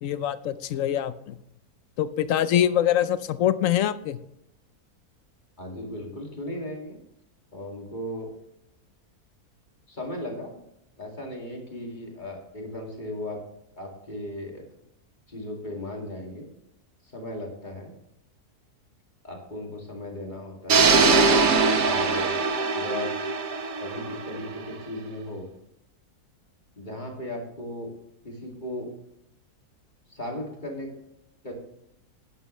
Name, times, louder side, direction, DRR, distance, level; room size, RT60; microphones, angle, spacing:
voice 1, 0.0-1.4 2.0-4.2, left 11 dB, 70° left, 14 dB, 0.9 m, -24 dB
voice 2, 5.6-7.0 7.5-8.3 9.9-10.5 11.0-13.4 13.8-14.6 15.3-16.5 17.0-17.9 19.2-21.0 21.8-22.4 22.7-23.1 23.8-25.5 26.8-27.9 28.2-28.9 30.1-30.9 31.4-31.5, left 1 dB, 30° left, 0 dB, 2.4 m, -36 dB
sound 1, 20.7-24.7, right 4 dB, 65° right, 1.5 m, -22 dB
11.0 x 10.0 x 3.1 m, 0.79 s
omnidirectional pair, 1.7 m